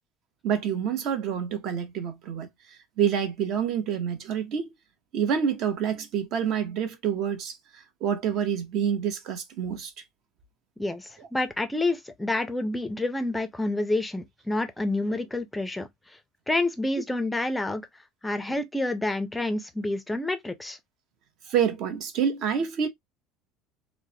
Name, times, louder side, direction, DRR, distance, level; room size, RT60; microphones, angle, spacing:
voice 1, 0.4-2.5 3.0-4.7 5.1-7.6 8.0-9.9 21.5-22.9, right 8 dB, 55° right, 0.8 m, -27 dB
voice 2, 10.8-15.9 16.5-17.9 18.2-20.8, left 2 dB, 10° left, 0.4 m, -28 dB
3.0 x 2.1 x 2.7 m
cardioid pair, 140°, 0 cm